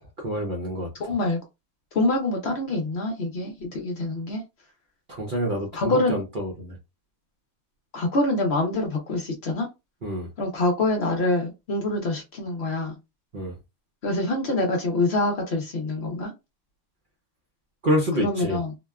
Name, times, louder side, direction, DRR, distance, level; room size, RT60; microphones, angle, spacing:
voice 1, 0.2-0.9 5.1-6.8 10.0-10.3 13.3-13.6 17.8-18.6, equal, 50° right, -1 dB, 0.7 m, -27 dB
voice 2, 1.0-1.4 1.9-4.4 5.7-6.2 7.9-9.7 10.4-13.0 14.0-16.3 18.2-18.7, left 2 dB, 55° left, 2 dB, 0.9 m, -25 dB
2.9 x 2.1 x 2.3 m, 0.23 s
omnidirectional pair, 1.5 m